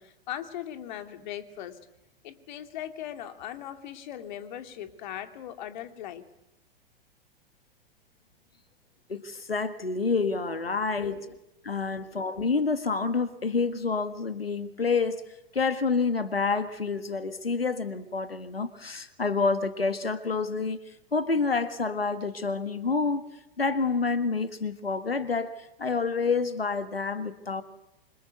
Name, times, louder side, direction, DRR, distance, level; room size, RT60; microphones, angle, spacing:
voice 1, 0.0-1.8 2.2-6.2 11.0-11.4 11.7-12.1, left 11 dB, 50° left, 8 dB, 2.8 m, -39 dB
voice 2, 9.1-11.2 11.6-15.2 15.5-23.3 23.6-27.6, left 4 dB, 80° left, 11 dB, 1.7 m, -28 dB
28.0 x 26.0 x 8.0 m, 0.87 s
figure-of-eight pair, 100°, 29 cm